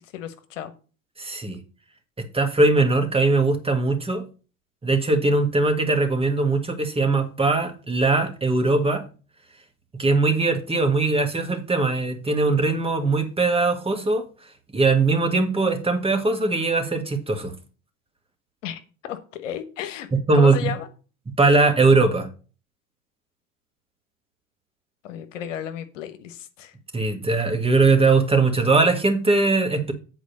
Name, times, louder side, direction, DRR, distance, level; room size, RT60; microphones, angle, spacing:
voice 1, 0.1-0.7 18.6-20.1 20.3-20.9 25.0-26.7, left 10 dB, 65° left, 1.2 m, -33 dB
voice 2, 1.2-1.6 2.2-4.2 4.8-9.0 9.9-14.2 14.7-17.5 20.1-20.7 21.3-22.3 26.9-29.9, right 3 dB, 15° right, 1.7 m, -20 dB
8.3 x 4.6 x 6.5 m
figure-of-eight pair, 75°, 40 cm